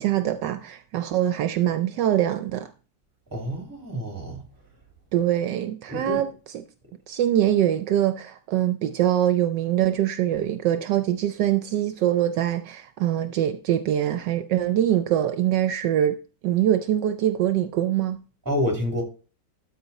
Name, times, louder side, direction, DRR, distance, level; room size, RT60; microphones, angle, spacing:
voice 1, 0.0-2.7 5.1-6.3 7.1-16.2 16.4-18.2, right 11 dB, 75° right, 1.2 m, -23 dB
voice 2, 3.3-4.4 5.9-6.2 18.4-19.0, left 1 dB, 10° right, 2.8 m, -28 dB
13.0 x 4.4 x 4.1 m
omnidirectional pair, 2.0 m